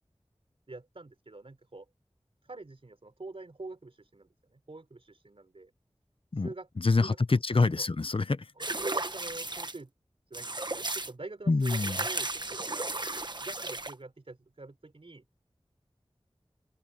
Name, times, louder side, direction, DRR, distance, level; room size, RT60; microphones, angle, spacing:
voice 1, 0.7-1.9 2.4-5.7 6.3-6.7 7.0-7.4 7.8-7.9 8.8-9.9 10.3-13.0 13.4-15.2, right 2 dB, 65° right, 3.9 m, -45 dB
voice 2, 6.3-8.5 11.5-12.0, left 3 dB, 60° left, 0.9 m, -26 dB
sound 1, 8.6-9.8 10.3-11.1 11.6-13.9, right 2 dB, 45° right, 1.2 m, -34 dB
open air
wide cardioid pair, 60°, 10 cm